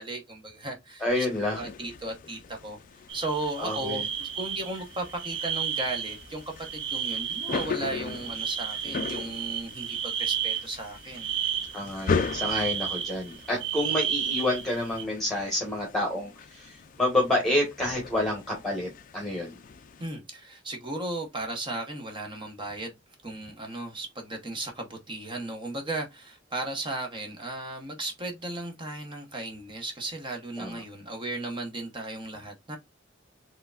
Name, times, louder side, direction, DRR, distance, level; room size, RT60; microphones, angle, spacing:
voice 1, 0.0-1.3 1.5-2.8 3.1-11.3 20.0-22.9 23.2-32.8, right 2 dB, 25° right, 0.8 m, -35 dB
voice 2, 1.0-1.6 3.6-4.0 11.7-19.6 30.6-30.8, left 1 dB, ahead, 1.3 m, -29 dB
sound 1, 1.1-20.1, left 5 dB, 45° left, 0.4 m, -38 dB
sound 2, 3.1-15.0, right 8 dB, 70° right, 1.2 m, -32 dB
4.7 x 3.2 x 2.3 m
head